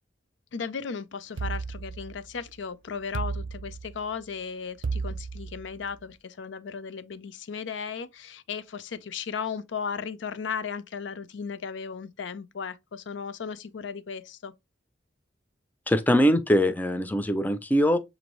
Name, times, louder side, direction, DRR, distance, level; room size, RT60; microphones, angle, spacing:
voice 1, 0.5-14.5, left 6 dB, 75° left, 0.5 m, -36 dB
sound 1, 1.4-2.5 3.1-4.2 4.8-5.9, right 4 dB, 80° right, 0.5 m, -33 dB
voice 2, 15.9-18.0, equal, 10° left, 0.4 m, -22 dB
6.7 x 2.6 x 3.0 m
head